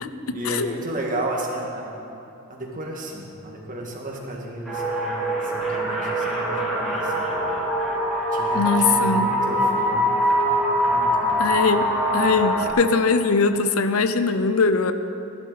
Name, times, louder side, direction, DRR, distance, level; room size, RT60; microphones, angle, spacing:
voice 1, 0.0-2.0 2.5-7.3 8.3-10.1 10.9-11.4, right 1 dB, 40° right, -1 dB, 1.9 m, -33 dB
sound 1, 4.7-12.7, equal, 5° right, 3.4 m, -23 dB
voice 2, 8.5-9.3 11.4-11.8 12.1-14.9, left 4 dB, 75° left, 10 dB, 0.7 m, -21 dB
16.0 x 11.5 x 4.2 m, 2.7 s
head